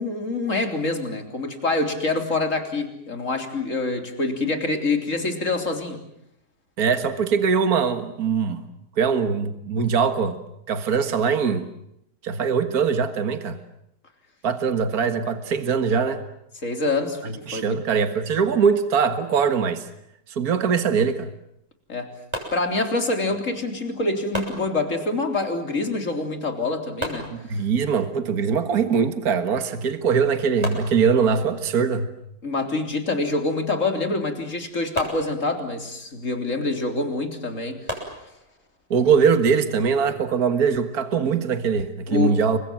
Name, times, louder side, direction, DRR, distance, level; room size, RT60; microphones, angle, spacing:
voice 1, 0.0-6.0 16.6-17.8 21.9-22.1 22.5-27.3 27.5-27.6 32.4-37.8 42.1-42.4, left 3 dB, 45° left, 4.0 m, -26 dB
voice 2, 6.8-8.6 9.0-10.4 10.7-11.7 12.2-13.6 14.4-16.2 17.5-19.9 20.3-21.3 27.3-32.1 38.9-42.6, right 6 dB, 60° right, 2.1 m, -22 dB
sound 1, 22.3-23.3 24.3-25.3 27.0-28.0 29.6-29.7 30.1-30.2 30.6-31.7 35.0-36.0 37.9-38.8, equal, 15° right, 7.2 m, -35 dB
30.0 x 24.0 x 7.6 m
omnidirectional pair, 1.8 m